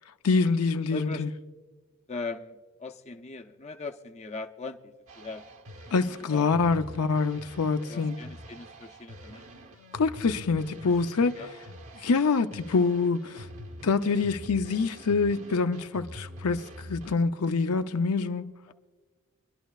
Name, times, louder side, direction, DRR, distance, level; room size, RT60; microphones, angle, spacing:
voice 1, 0.2-1.3 5.9-8.2 9.9-11.3 12.0-13.5 13.8-18.5, left 4 dB, 85° left, 0.6 m, -26 dB
voice 2, 0.9-1.2 2.1-5.4 6.3-6.9 7.9-9.4 10.8-10.9 11.2-11.5 18.7-18.8, left 3 dB, 30° left, 0.5 m, -40 dB
sound 1, 5.1-17.2, equal, 70° right, 1.1 m, -45 dB
24.5 x 11.5 x 2.4 m
head